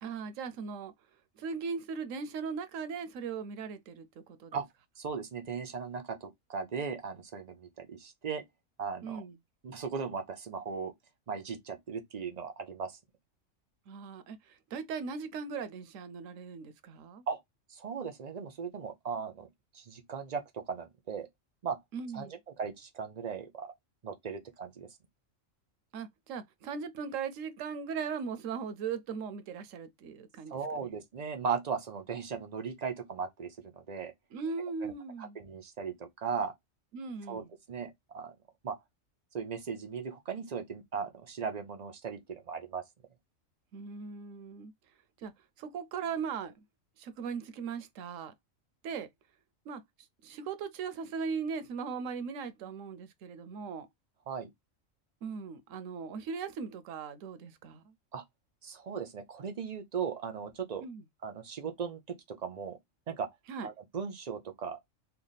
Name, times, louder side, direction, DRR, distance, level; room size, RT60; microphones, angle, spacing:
voice 1, 0.0-0.9 1.4-4.1 4.4-4.6 9.0-9.4 13.9-17.2 21.9-22.4 25.9-31.0 34.3-35.4 36.9-37.5 43.7-44.7 45.2-45.3 45.6-46.5 47.0-48.3 48.8-49.1 49.7-49.8 50.2-53.9 55.2-57.8 60.8-61.0 63.5-63.7, right 5 dB, 75° right, 1.0 m, -38 dB
voice 2, 5.0-8.4 8.8-9.2 9.6-10.9 11.3-13.0 17.3-17.4 17.7-19.5 19.7-21.3 21.6-21.8 22.1-23.7 24.0-24.9 30.5-34.1 34.8-34.9 35.2-36.5 37.3-38.3 38.6-38.8 39.3-42.8 54.3-54.5 58.1-58.2 58.6-60.8 61.2-62.8 63.1-63.3 63.6-64.8, right 6 dB, 45° right, 0.5 m, -37 dB
3.3 x 2.3 x 3.9 m
omnidirectional pair, 1.4 m